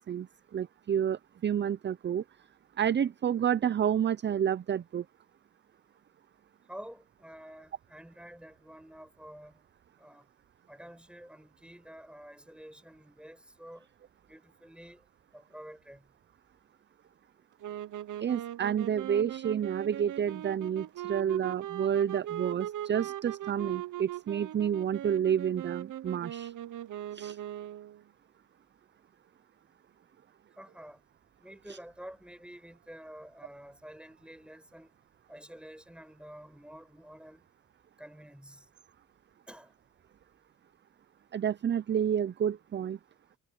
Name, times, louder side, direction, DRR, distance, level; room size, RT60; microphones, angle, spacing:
voice 1, 0.5-2.2 2.8-5.0 18.2-26.5 27.1-27.4 31.7-31.8 41.3-43.0, right 9 dB, 35° right, 0.5 m, -29 dB
voice 2, 6.7-9.6 10.0-10.3 10.7-13.9 14.3-15.0 15.3-16.0 30.6-31.0 31.4-34.9 35.3-37.4 38.0-38.7 39.5-39.7, equal, 5° right, 5.4 m, -49 dB
sound 1, 17.6-28.0, right 12 dB, 65° right, 0.8 m, -40 dB
cardioid pair, 90°, 34 cm